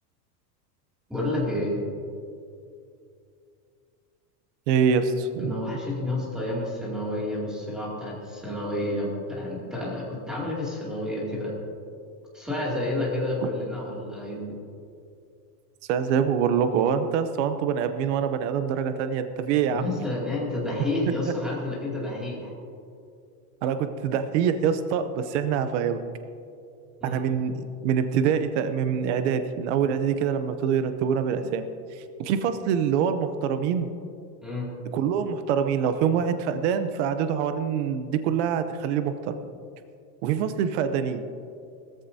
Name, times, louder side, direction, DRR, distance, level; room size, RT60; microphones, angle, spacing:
voice 1, 1.1-1.8 5.4-11.5 12.3-14.6 19.7-22.5 27.0-27.2 34.4-34.7, left 1 dB, ahead, -5 dB, 2.5 m, -30 dB
voice 2, 4.7-5.6 15.9-19.8 23.6-26.0 27.0-31.6 31.9-33.9 34.9-39.3 40.2-41.2, right 7 dB, 50° right, 9 dB, 0.7 m, -25 dB
19.0 x 14.0 x 2.7 m, 2.5 s
supercardioid pair, 180°, 46 cm